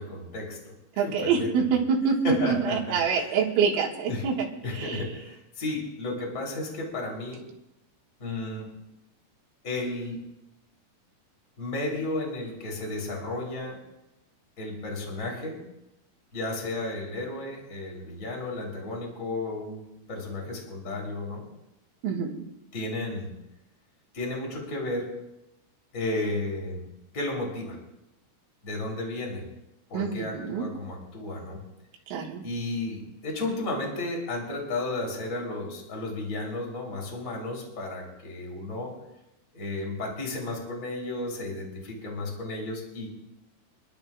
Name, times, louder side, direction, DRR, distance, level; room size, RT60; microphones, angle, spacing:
voice 1, 0.0-1.7 2.2-3.3 4.1-4.3 4.6-7.4 8.2-8.7 9.6-10.2 11.6-13.8 14.6-15.6 16.3-19.8 20.1-21.4 22.7-23.3 24.1-25.1 25.9-26.9 27.1-27.8 28.6-29.4 29.9-31.6 32.4-38.9 39.5-43.1, left 2 dB, 20° left, -2 dB, 3.1 m, -33 dB
voice 2, 1.0-4.5 4.7-5.1 22.0-22.4 29.9-30.7 32.1-32.4, right 6 dB, 75° right, -1 dB, 4.2 m, -26 dB
27.5 x 12.0 x 2.5 m, 0.89 s
omnidirectional pair, 5.9 m